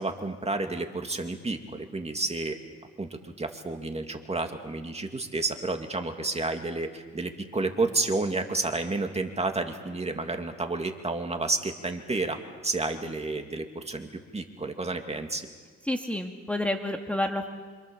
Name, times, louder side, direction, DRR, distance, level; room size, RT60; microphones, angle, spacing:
voice 1, 0.0-2.6 3.0-12.4 12.6-15.5, right 3 dB, 20° right, 5 dB, 2.5 m, -30 dB
voice 2, 15.9-17.5, left 1 dB, 5° left, 3 dB, 2.1 m, -29 dB
27.0 x 26.0 x 7.2 m, 1.5 s
cardioid pair, 90°, 30 cm